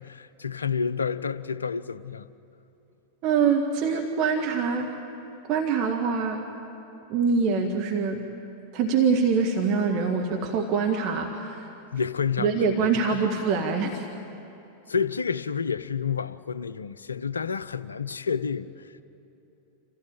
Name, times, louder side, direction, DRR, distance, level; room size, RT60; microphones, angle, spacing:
voice 1, 0.0-2.3 11.9-13.3 14.9-19.0, left 6 dB, 75° left, 0.6 m, -30 dB
voice 2, 3.2-4.9 5.5-6.4 7.1-8.2 8.7-11.7 12.4-14.0, right 5 dB, 40° right, 1.6 m, -24 dB
27.0 x 15.5 x 8.9 m
figure-of-eight pair, 90°, 0 cm